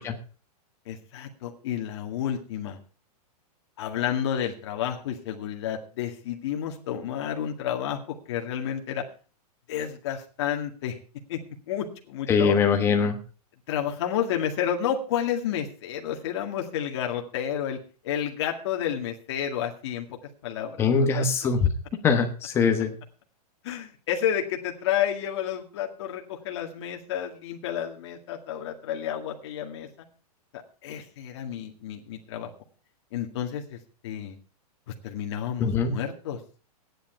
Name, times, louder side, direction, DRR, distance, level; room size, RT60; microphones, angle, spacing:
voice 1, 0.9-2.8 3.8-9.0 9.7-10.9 11.3-11.4 11.7-12.6 13.7-17.8 18.0-21.3 23.6-29.9 30.8-32.5 33.1-34.4 35.0-36.4, left 9 dB, 45° left, 2 dB, 2.0 m, -30 dB
voice 2, 12.3-13.2 20.8-21.7 22.0-22.9 35.6-35.9, left 5 dB, 10° left, 5 dB, 1.2 m, -22 dB
14.0 x 10.5 x 4.5 m, 0.37 s
supercardioid pair, 175°, 20 cm